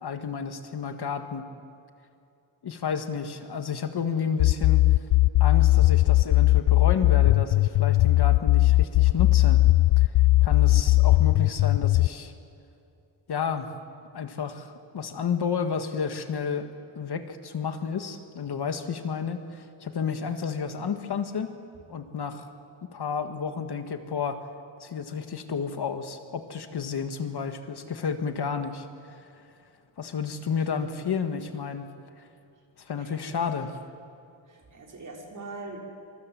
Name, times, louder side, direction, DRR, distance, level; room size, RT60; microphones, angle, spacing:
voice 1, 0.0-1.4 2.6-4.8 5.4-9.6 10.0-10.1 10.4-12.3 13.3-13.7 14.1-21.5 21.9-22.5 22.9-24.5 24.8-29.2 30.0-31.9 32.8-33.7, left 6 dB, 55° left, 7 dB, 1.8 m, -31 dB
sound 1, 4.4-12.1, left 18 dB, 75° left, 0.6 m, -19 dB
voice 2, 33.0-33.5 34.5-35.8, right 3 dB, 40° right, -1 dB, 5.7 m, -43 dB
27.5 x 26.5 x 7.7 m, 2.6 s
wide cardioid pair, 140°, 48 cm